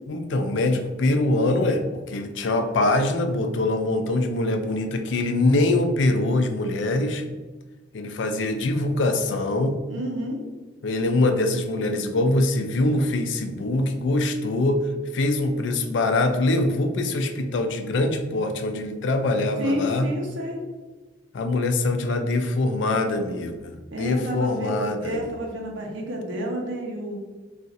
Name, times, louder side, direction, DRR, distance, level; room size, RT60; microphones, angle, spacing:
voice 1, 0.1-7.2 7.9-9.8 10.8-14.8 15.1-20.1 21.3-25.3, left 2 dB, 70° left, 7 dB, 0.4 m, -23 dB
voice 2, 9.9-10.4 19.6-20.6 23.9-27.2, equal, 85° right, 0 dB, 0.7 m, -30 dB
2.5 x 2.4 x 4.1 m, 1.2 s
head